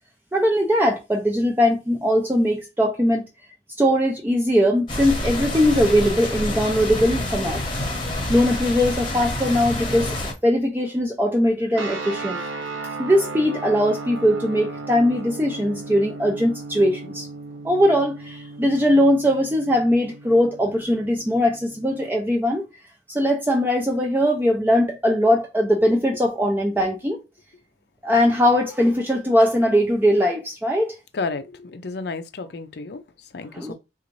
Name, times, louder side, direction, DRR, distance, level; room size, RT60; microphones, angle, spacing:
voice 1, 0.3-3.3 3.8-7.6 8.3-10.2 10.4-12.4 13.0-17.3 17.6-22.7 23.1-27.2 28.0-31.0 33.5-33.7, equal, 10° right, 0.4 m, -20 dB
sound 1, 4.9-10.3, left 1 dB, 25° left, 0.9 m, -27 dB
sound 2, 11.7-22.1, right 3 dB, 90° right, 0.9 m, -36 dB
voice 2, 31.1-33.0 33.3-33.7, left 3 dB, 55° left, 0.5 m, -31 dB
3.9 x 2.5 x 3.1 m
head